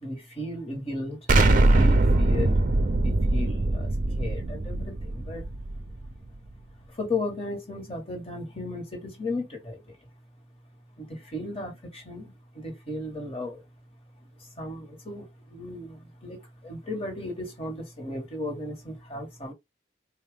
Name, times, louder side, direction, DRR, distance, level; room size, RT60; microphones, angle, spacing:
voice 1, 0.0-1.2 1.4-2.6 3.0-3.9 4.2-5.5 6.9-10.0 11.0-13.6 14.4-19.5, left 2 dB, 30° left, 1.2 m, -35 dB
Explosion, 1.3-6.1, right 2 dB, 45° right, 0.5 m, -22 dB
4.2 x 2.3 x 3.5 m
head